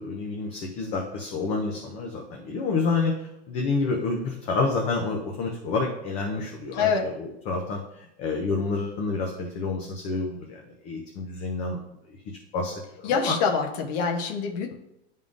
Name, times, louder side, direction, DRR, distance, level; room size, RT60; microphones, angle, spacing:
voice 1, 0.0-11.8 12.5-13.4, left 3 dB, 20° left, 0 dB, 0.5 m, -29 dB
voice 2, 6.7-7.1 13.0-14.7, left 5 dB, 40° left, 1 dB, 0.9 m, -25 dB
10.5 x 3.6 x 2.5 m, 0.84 s
supercardioid pair, 165°, 32 cm